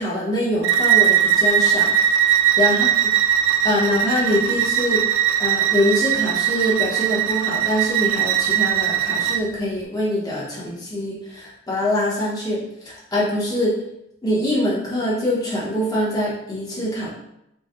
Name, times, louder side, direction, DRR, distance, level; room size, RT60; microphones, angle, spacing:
voice 1, 0.0-1.9 2.6-3.1 3.6-5.0 5.4-13.7 14.2-17.1, left 1 dB, 20° left, -6 dB, 1.0 m, -24 dB
Bowed string instrument, 0.6-9.4, right 10 dB, 75° right, 0.3 m, -20 dB
4.1 x 2.3 x 3.6 m, 0.82 s
head